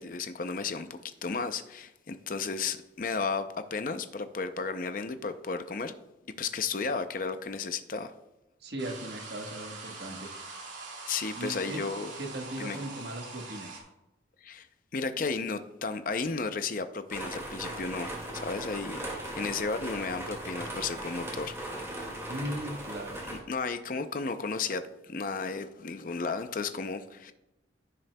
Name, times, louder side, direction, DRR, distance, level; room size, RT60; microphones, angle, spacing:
voice 1, 0.0-5.9 6.4-8.1 11.0-12.1 12.6-12.8 14.4-14.7 14.9-21.9 23.3-27.3, left 4 dB, 45° left, 0.6 m, -34 dB
voice 2, 8.6-10.3 11.3-11.8 12.2-13.8 22.3-23.2, right 1 dB, 60° right, 1.3 m, -38 dB
sound 1, 8.8-13.8, right 3 dB, 85° right, 2.3 m, -43 dB
sound 2, 17.1-23.4, right 1 dB, 15° right, 2.0 m, -38 dB
15.0 x 6.2 x 2.3 m
head